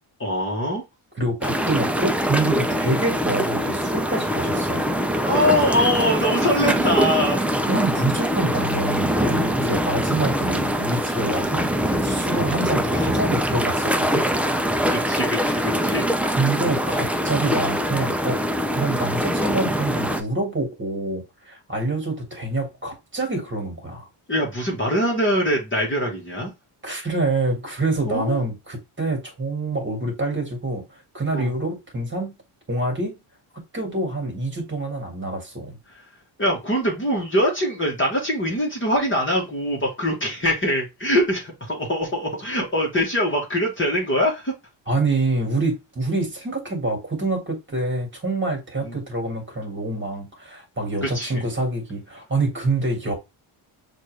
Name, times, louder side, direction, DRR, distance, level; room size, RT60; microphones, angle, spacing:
voice 1, 0.2-0.8 5.1-7.5 9.6-9.8 14.9-16.1 24.3-26.5 28.1-28.4 31.3-31.5 35.9-36.0 36.4-44.5 48.8-49.0 51.0-51.4, equal, 25° left, 1.3 m, -23 dB
voice 2, 1.2-4.8 7.7-14.3 16.2-18.4 18.7-24.1 26.8-30.8 31.1-32.3 32.7-33.2 33.5-35.8 44.9-53.1, right 2 dB, 25° right, 1.8 m, -26 dB
sound 1, 1.4-20.2, equal, 5° right, 0.3 m, -23 dB
6.3 x 2.6 x 3.2 m
cardioid pair, 120°, 49 cm